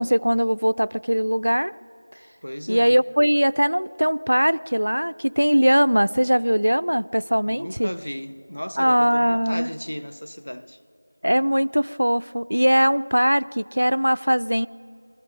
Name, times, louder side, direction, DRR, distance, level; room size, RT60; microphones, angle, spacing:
voice 1, 0.0-1.7 2.7-7.9 8.8-9.7 11.2-14.7, equal, 75° right, 0.4 m, -20 dB
voice 2, 2.4-3.0 7.5-10.8, equal, 75° left, 0.8 m, -34 dB
21.5 x 14.5 x 9.2 m
figure-of-eight pair, 175°, 0 cm